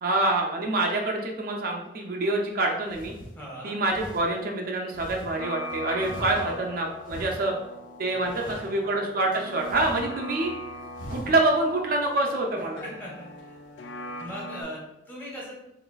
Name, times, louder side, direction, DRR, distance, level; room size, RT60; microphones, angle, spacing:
voice 1, 0.0-3.1 3.6-7.5 8.0-10.5 11.1-12.8, right 2 dB, 55° right, 1 dB, 0.4 m, -26 dB
sound 1, 2.3-2.4 2.8-3.3 3.9-4.2 4.9-5.3 6.0-6.7 7.0-7.5 8.2-8.7 9.3-10.1 10.4-10.5 10.9-11.4, equal, 50° left, 0.9 m, -40 dB
voice 2, 3.3-3.8 6.2-6.6 8.1-8.8 12.8-13.6 14.2-15.5, equal, 10° left, -5 dB, 1.1 m, -40 dB
sound 2, 5.4-14.6, equal, 75° left, 0.4 m, -40 dB
3.8 x 3.2 x 2.3 m, 0.91 s
head